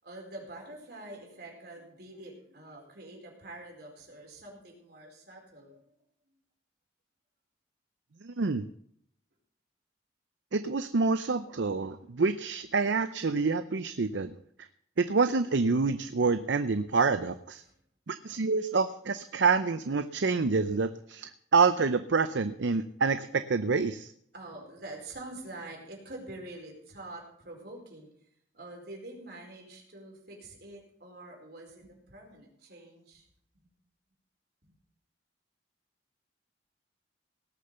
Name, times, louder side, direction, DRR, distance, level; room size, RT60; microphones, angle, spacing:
voice 1, 0.0-5.9 17.6-17.8 24.3-28.1 28.5-33.2 33.5-33.7 34.6-34.8, right 2 dB, 55° right, 0 dB, 4.7 m, -46 dB
voice 2, 8.2-8.6 10.5-14.3 14.6-14.7 15.0-17.6 18.1-24.1, right 4 dB, 70° right, 11 dB, 0.6 m, -27 dB
18.5 x 6.7 x 6.9 m, 0.68 s
head